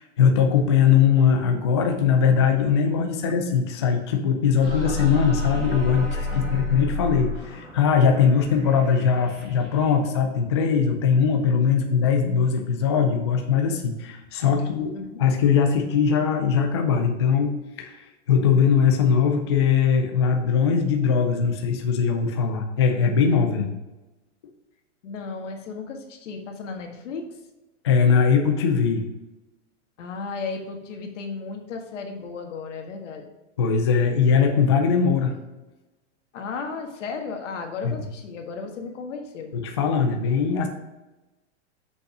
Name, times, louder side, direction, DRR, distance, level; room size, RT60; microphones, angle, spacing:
voice 1, 0.0-14.9 15.2-18.0 18.3-23.7 27.8-29.0 33.6-35.3 37.8-38.0 39.5-40.7, left 6 dB, 25° left, 4 dB, 0.3 m, -21 dB
sound 1, 4.6-10.1, left 3 dB, 25° right, 2.9 m, -31 dB
voice 2, 6.3-6.7 14.9-15.2 25.0-27.3 30.0-33.3 36.3-39.5, left 4 dB, 85° left, 3 dB, 1.7 m, -34 dB
6.5 x 5.4 x 4.9 m, 1.1 s
supercardioid pair, 180°, 36 cm